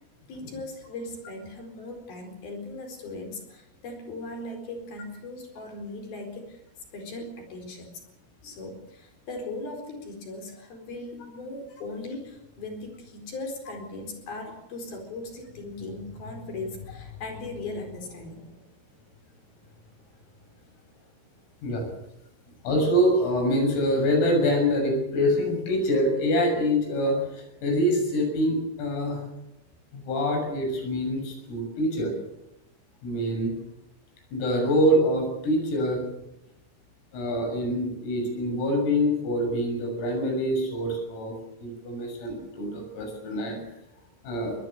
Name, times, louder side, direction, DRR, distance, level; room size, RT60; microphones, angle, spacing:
voice 1, 0.3-6.6 6.9-8.0 8.4-18.6 19.5-19.8 22.5-22.7 37.2-37.3, left 2 dB, 50° left, 5 dB, 5.9 m, -38 dB
voice 2, 22.7-29.2 29.9-32.1 33.0-33.6 34.3-36.0 37.1-43.6 44.2-44.5, equal, 85° left, 4 dB, 9.5 m, -25 dB
24.0 x 20.0 x 6.7 m, 0.85 s
omnidirectional pair, 5.9 m